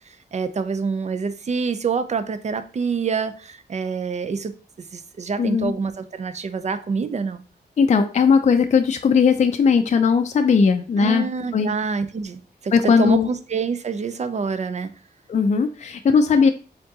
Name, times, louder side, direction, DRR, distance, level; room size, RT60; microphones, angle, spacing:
voice 1, 0.3-7.4 11.0-14.9, right 5 dB, 40° right, 0.4 m, -26 dB
voice 2, 5.4-5.7 7.8-11.3 11.5-11.7 12.7-13.3 15.3-16.5, left 5 dB, 40° left, 0.4 m, -18 dB
4.5 x 3.7 x 2.8 m
wide cardioid pair, 130°, 18 cm